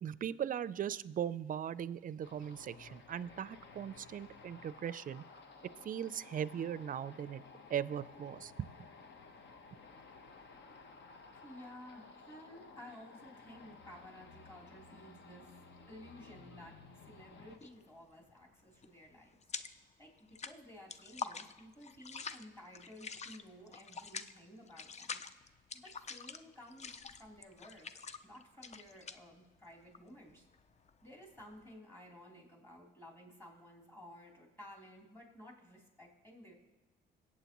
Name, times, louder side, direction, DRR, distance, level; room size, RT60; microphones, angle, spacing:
voice 1, 0.0-5.2 5.8-7.4 7.7-8.5, right 9 dB, 45° right, 17 dB, 0.4 m, -39 dB
sound 1, 2.2-17.6, left 4 dB, 65° left, 1.1 m, -56 dB
voice 2, 11.4-15.6 15.9-19.4 20.0-25.2 25.8-27.9 28.2-30.5 31.0-36.5, equal, 10° left, -2 dB, 3.4 m, -55 dB
sound 2, 17.5-17.9 18.2-19.9 20.2-31.7, left 5 dB, 35° left, 0.5 m, -46 dB
21.5 x 8.5 x 3.0 m, 1.2 s
cardioid pair, 90°, 20 cm